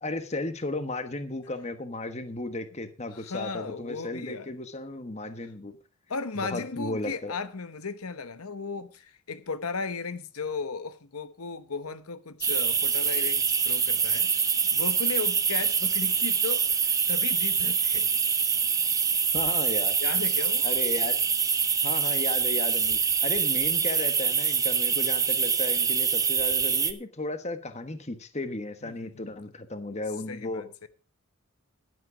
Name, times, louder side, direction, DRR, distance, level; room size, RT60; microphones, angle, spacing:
voice 1, 0.0-5.7 6.4-7.3 19.3-19.9 20.6-21.2 21.8-30.6, left 2 dB, 30° left, 1.2 m, -34 dB
voice 2, 3.1-4.5 6.1-14.3 14.7-18.2 20.0-20.7 28.8-29.3 30.3-30.9, left 4 dB, 90° left, 1.0 m, -36 dB
sound 1, 12.4-26.9, right 6 dB, 15° right, 0.7 m, -25 dB
11.0 x 10.5 x 4.9 m
head